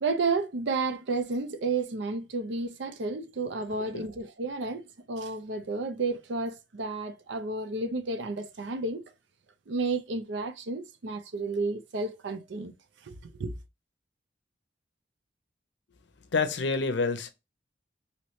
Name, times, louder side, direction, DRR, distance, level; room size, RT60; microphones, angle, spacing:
voice 1, 0.0-9.0 9.7-12.7 13.0-13.1 13.4-13.5, right 3 dB, 75° right, 0.5 m, -31 dB
voice 2, 3.8-4.1 16.3-17.3, left 4 dB, 75° left, 0.6 m, -28 dB
3.0 x 2.8 x 3.0 m
head